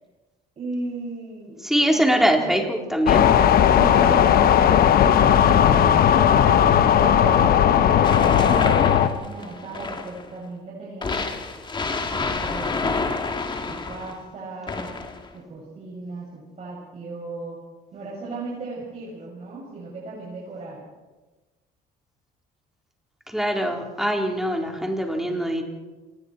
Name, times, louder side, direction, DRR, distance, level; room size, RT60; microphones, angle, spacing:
voice 1, 0.6-2.6 3.7-7.5 8.0-11.2 12.1-13.1 13.7-14.9 15.3-17.6 17.9-20.8, right 3 dB, 40° right, -5 dB, 7.1 m, -36 dB
voice 2, 1.6-3.3 23.3-25.6, equal, ahead, 1 dB, 4.1 m, -23 dB
sound 1, 3.1-9.1, left 9 dB, 60° left, 1.2 m, -16 dB
sound 2, 8.0-10.3 11.0-14.2 14.7-15.3, left 4 dB, 30° left, 2.3 m, -28 dB
28.0 x 20.5 x 4.6 m, 1.2 s
cardioid pair, 110°, 17 cm